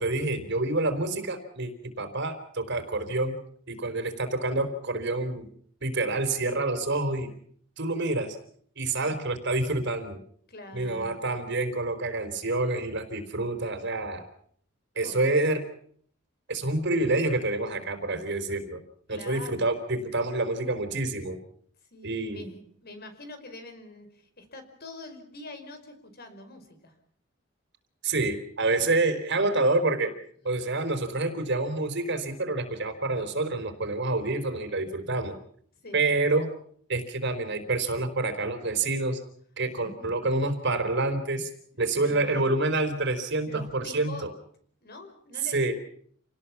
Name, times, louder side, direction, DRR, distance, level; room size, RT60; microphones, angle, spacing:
voice 1, 0.0-1.7 2.0-3.3 3.7-5.5 5.8-7.3 7.8-8.4 8.8-10.2 10.7-14.2 15.0-15.6 16.5-18.8 19.1-21.4 22.0-22.5 28.0-30.1 30.4-35.3 35.9-36.5 36.9-39.2 39.6-41.5 41.8-44.3 45.4-45.7, right 2 dB, 60° right, 8 dB, 4.1 m, -27 dB
voice 2, 10.5-11.3 15.0-15.2 19.1-19.7 21.9-27.0 28.8-28.9 35.8-36.0 39.8-39.9 42.0-42.5 43.5-44.3 44.8-45.7, left 2 dB, 50° left, 8 dB, 5.2 m, -44 dB
29.0 x 19.0 x 7.3 m, 0.62 s
head